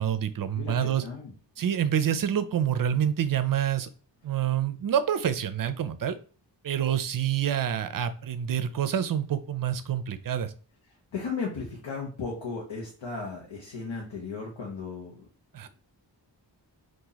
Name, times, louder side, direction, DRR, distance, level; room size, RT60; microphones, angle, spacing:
voice 1, 0.0-1.0 1.6-3.9 4.2-6.2 6.6-10.5 15.5-15.7, right 9 dB, 50° right, 12 dB, 0.4 m, -27 dB
voice 2, 0.5-1.3 11.1-15.3, left 4 dB, 85° left, -3 dB, 1.0 m, -35 dB
2.8 x 2.6 x 3.9 m, 0.38 s
wide cardioid pair, 75°, 44 cm